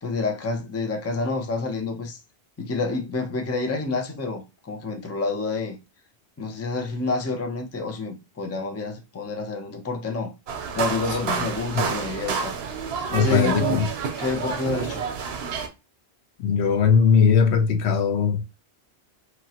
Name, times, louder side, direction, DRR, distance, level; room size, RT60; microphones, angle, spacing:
voice 1, 0.0-2.2 2.6-5.8 6.4-10.3 10.7-12.6 13.1-13.8 14.2-15.0, left 3 dB, 20° left, 0.4 m, -28 dB
sound 1, 10.5-15.7, right 6 dB, 75° right, 0.8 m, -29 dB
voice 2, 11.1-11.9 13.1-13.9 16.4-18.4, left 6 dB, 85° left, 0.8 m, -20 dB
3.0 x 2.4 x 2.8 m
omnidirectional pair, 1.1 m